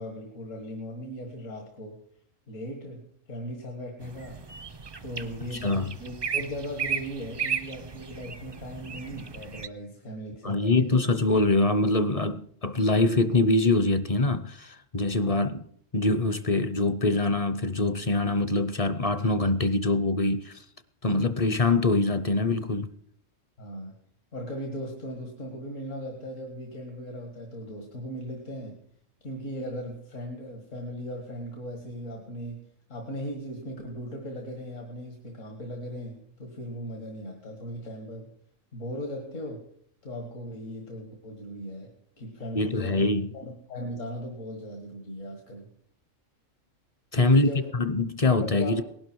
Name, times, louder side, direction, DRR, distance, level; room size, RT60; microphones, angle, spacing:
voice 1, 0.0-2.0 2.5-4.4 5.0-5.7 6.0-11.0 15.2-15.5 23.6-23.9 24.3-28.8 29.2-38.3 38.7-39.6 40.0-45.7 47.1-47.7 48.4-48.8, equal, 80° left, 2.3 m, -38 dB
sound 1, 4.0-9.7, right 7 dB, 35° right, 0.4 m, -35 dB
voice 2, 5.5-5.9 10.4-15.5 15.9-20.6 21.0-22.9 42.5-43.3 47.1-48.8, left 2 dB, 40° left, 0.6 m, -24 dB
19.0 x 11.5 x 4.6 m
omnidirectional pair, 1.3 m